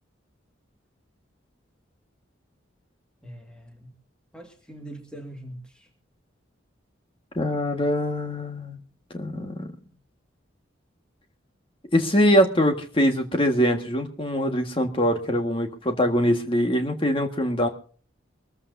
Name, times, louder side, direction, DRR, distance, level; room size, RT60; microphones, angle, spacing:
voice 1, 3.2-3.9 4.3-5.9, right 1 dB, 5° left, 2 dB, 2.0 m, -42 dB
voice 2, 7.3-8.8 9.1-9.7 11.9-17.7, equal, 25° left, 4 dB, 1.7 m, -23 dB
24.0 x 14.5 x 2.7 m, 0.41 s
head